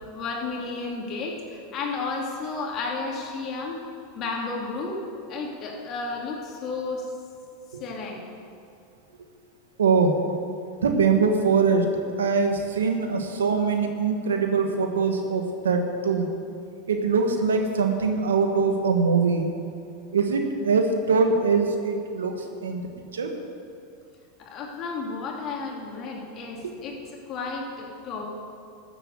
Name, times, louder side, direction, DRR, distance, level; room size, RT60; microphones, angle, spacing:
voice 1, 0.1-3.8 4.1-5.0 5.3-7.1 7.8-8.2 24.4-27.0 27.3-28.3, left 4 dB, 45° left, 0 dB, 2.7 m, -32 dB
voice 2, 9.8-10.2 10.8-11.8 12.2-16.3 16.9-19.5 20.1-22.3 22.6-22.8 23.1-23.3 26.6-26.7, right 5 dB, 90° right, 4 dB, 1.5 m, -22 dB
13.5 x 7.9 x 7.7 m, 2.5 s
hypercardioid pair, 100°, 0 cm